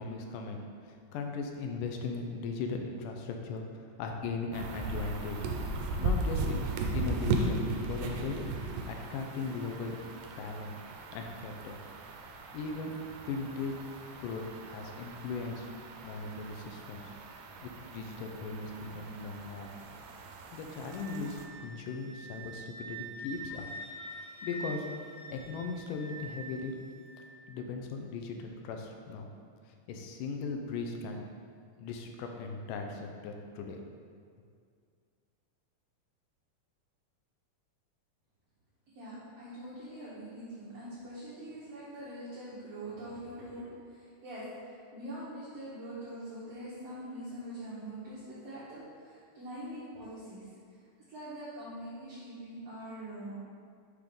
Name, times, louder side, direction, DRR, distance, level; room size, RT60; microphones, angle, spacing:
voice 1, 0.0-5.5 6.0-10.0 10.4-10.7 11.1-11.8 12.5-13.0 13.3-13.8 14.2-15.7 16.0-17.0 17.6-19.7 20.5-23.7 24.4-24.9 25.3-26.8 27.5-29.3 29.7-31.2 31.8-33.8, left 4 dB, 85° left, 3 dB, 2.1 m, -38 dB
sound 1, 4.5-21.5, right 2 dB, 90° right, 2.2 m, -37 dB
Wind instrument woodwind instrument, 20.8-27.2, right 2 dB, 65° left, 2.2 m, -45 dB
voice 2, 38.9-50.5 51.1-53.3, right 1 dB, 60° right, -11 dB, 2.0 m, -43 dB
6.1 x 3.6 x 5.1 m, 2.2 s
omnidirectional pair, 3.8 m